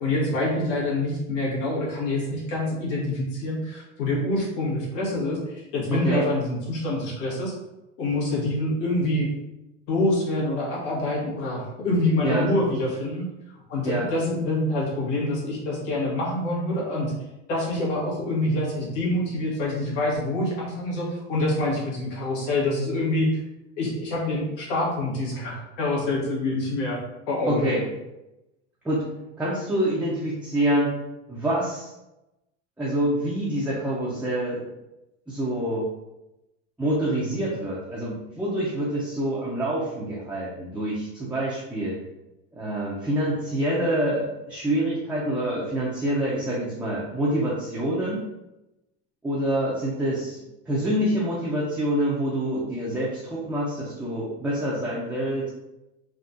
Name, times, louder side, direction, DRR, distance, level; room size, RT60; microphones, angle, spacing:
voice 1, 0.0-7.5 8.0-9.3 9.9-13.3 13.7-17.1 17.5-23.3 23.8-27.0 27.3-27.6, left 1 dB, 80° left, -4 dB, 1.5 m, -26 dB
voice 2, 5.9-6.3 12.2-12.5 13.8-14.1 27.4-27.8 28.8-29.1 29.4-30.9 31.3-31.9 32.8-34.7 35.3-35.9 36.8-41.9 42.5-48.2 49.2-55.5, right 1 dB, 5° right, -7 dB, 0.5 m, -26 dB
3.6 x 2.3 x 2.6 m, 0.95 s
supercardioid pair, 125°, 37 cm